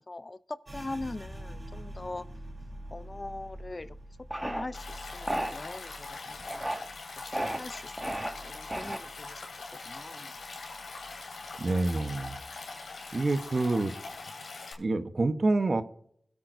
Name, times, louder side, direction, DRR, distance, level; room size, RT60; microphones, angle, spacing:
voice 1, 0.0-2.3 2.9-6.7 7.2-9.4 9.8-10.3, left 2 dB, 40° left, 14 dB, 0.5 m, -42 dB
sound 1, 0.6-10.1 10.3-11.6 11.9-12.4 12.8-13.4, right 1 dB, 35° right, 3.4 m, -47 dB
sound 2, 4.3-4.6 5.3-5.5 6.4-6.8 7.3-7.6 8.0-8.3 8.7-9.2, right 1 dB, 15° right, 1.8 m, -32 dB
Stream, 4.7-14.7, left 3 dB, 85° left, 2.7 m, -42 dB
voice 2, 11.6-12.4 13.1-13.9 14.8-15.8, right 2 dB, 50° right, 10 dB, 1.0 m, -27 dB
21.0 x 8.6 x 2.6 m, 0.66 s
cardioid pair, 45°, 0 cm